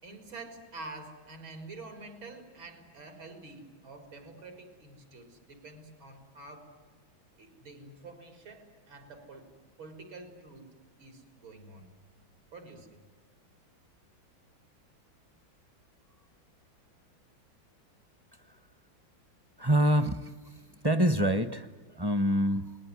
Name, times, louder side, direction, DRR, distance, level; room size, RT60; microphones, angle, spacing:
voice 1, 0.0-6.7 7.4-9.5 9.8-10.7 11.0-11.9 12.5-13.0, right 3 dB, 90° right, 6 dB, 4.9 m, -47 dB
voice 2, 19.6-20.3 20.8-21.7 21.9-22.8, right 1 dB, 20° right, 13 dB, 0.6 m, -25 dB
29.0 x 20.5 x 9.7 m, 1.5 s
omnidirectional pair, 2.1 m